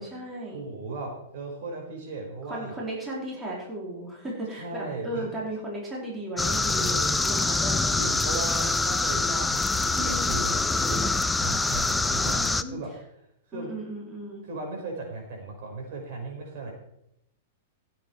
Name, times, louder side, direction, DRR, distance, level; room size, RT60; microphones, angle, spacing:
voice 1, 0.0-0.6 2.5-7.7 9.9-10.4 12.3-12.8 13.5-14.4, right 1 dB, 15° right, -4 dB, 4.6 m, -35 dB
voice 2, 0.5-2.7 4.5-5.3 6.6-7.2 7.8-11.1 11.4-12.9 13.5-13.7 14.4-16.7, right 3 dB, 55° right, 1 dB, 5.4 m, -37 dB
sound 1, 6.4-12.6, left 3 dB, 5° left, 0.5 m, -25 dB
16.0 x 8.8 x 4.8 m, 0.79 s
hypercardioid pair, 140°, 0 cm